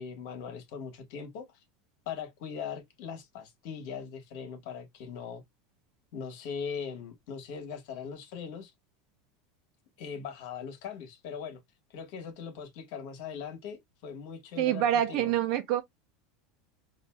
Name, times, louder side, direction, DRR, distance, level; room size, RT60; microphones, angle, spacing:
voice 1, 0.0-1.5 2.1-5.4 6.1-8.7 10.0-11.6 11.9-15.3, left 6 dB, 65° left, 1.2 m, -40 dB
voice 2, 14.6-15.8, right 11 dB, 60° right, 0.7 m, -26 dB
4.0 x 2.6 x 2.2 m
hypercardioid pair, 95°, 0 cm